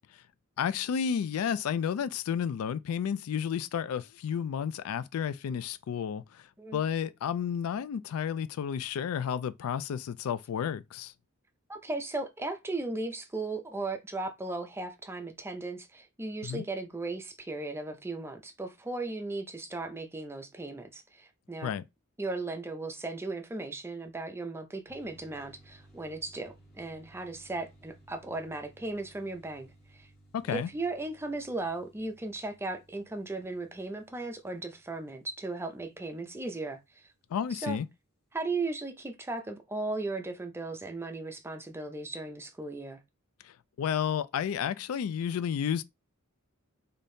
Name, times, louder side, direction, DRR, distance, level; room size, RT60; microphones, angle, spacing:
voice 1, 0.6-6.5 6.7-11.1 16.4-16.7 21.6-21.9 30.3-30.7 37.3-37.9 43.4-45.8, left 8 dB, 90° left, 0.3 m, -31 dB
voice 2, 11.7-21.7 22.2-29.7 29.9-30.1 30.5-37.1 37.5-37.8 38.3-43.0, right 2 dB, 10° right, 0.4 m, -36 dB
sound 1, 24.9-37.3, right 1 dB, 50° left, 1.7 m, -60 dB
3.4 x 2.7 x 2.7 m
head